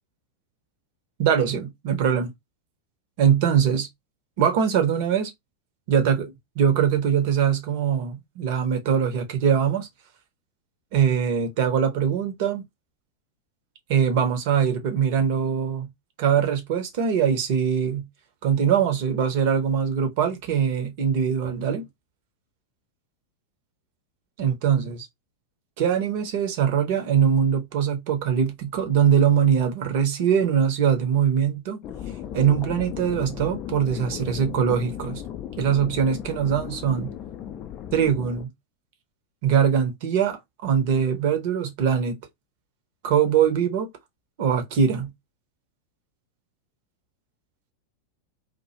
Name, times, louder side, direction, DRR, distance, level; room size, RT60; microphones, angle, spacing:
voice 1, 1.2-2.3 3.2-3.9 4.4-5.3 5.9-9.9 10.9-12.6 13.9-15.9 16.2-18.1 18.4-21.9 24.4-25.1 25.8-31.8 32.3-35.2 35.6-37.1 37.9-38.5 39.4-42.2 43.0-43.9 44.4-45.1, right 8 dB, 50° right, 0.7 m, -22 dB
sound 1, 31.8-38.4, left 10 dB, 35° left, 0.3 m, -36 dB
2.4 x 2.1 x 2.8 m
figure-of-eight pair, 90°, 0 cm